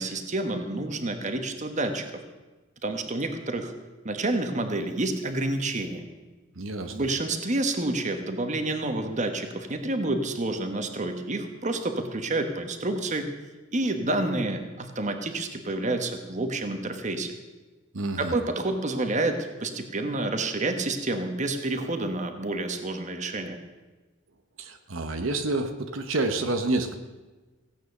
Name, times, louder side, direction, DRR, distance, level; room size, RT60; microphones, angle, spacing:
voice 1, 0.0-2.1 2.8-3.7 4.0-6.1 6.9-13.3 13.7-17.3 18.2-23.6, right 2 dB, 40° right, 6 dB, 1.3 m, -29 dB
voice 2, 6.6-7.1 17.9-18.3 24.6-27.0, right 2 dB, 85° right, 7 dB, 1.1 m, -28 dB
16.0 x 8.9 x 6.6 m, 1.2 s
head